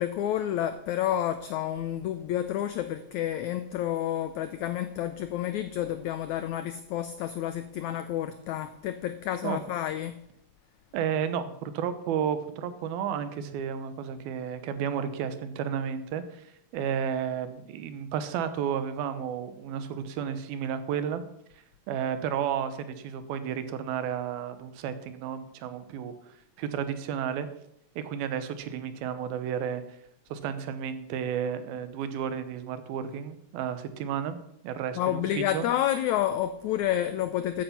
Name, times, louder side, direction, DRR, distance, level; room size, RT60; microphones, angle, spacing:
voice 1, 0.0-10.1 35.0-37.6, left 11 dB, 85° left, 11 dB, 1.6 m, -29 dB
voice 2, 10.9-21.2 21.9-27.5 28.0-30.0 30.3-34.4 34.6-35.7, right 8 dB, 90° right, 11 dB, 2.9 m, -32 dB
14.5 x 8.6 x 5.7 m, 0.77 s
omnidirectional pair, 4.1 m